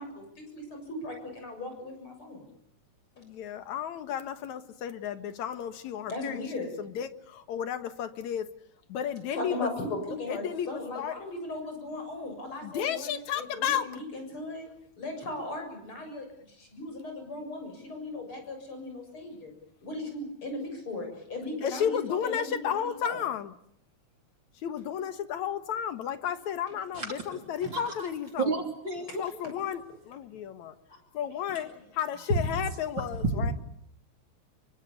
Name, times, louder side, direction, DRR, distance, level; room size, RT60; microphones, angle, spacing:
voice 1, 0.0-2.4 3.2-3.3 6.1-6.7 9.3-14.7 15.0-19.5 19.8-23.2 31.5-31.8, left 2 dB, 45° left, 7.9 m, -38 dB
voice 2, 3.2-8.5 8.9-9.7 10.3-10.7 10.9-11.1 12.6-13.9 21.6-23.5 24.6-28.5 29.2-30.7 31.1-33.5, left 9 dB, 75° left, 2.8 m, -33 dB
voice 3, 27.6-28.1 28.4-29.3 32.5-32.6 33.2-33.5, right 3 dB, 40° right, 3.9 m, -31 dB
27.5 x 24.0 x 8.5 m
omnidirectional pair, 3.3 m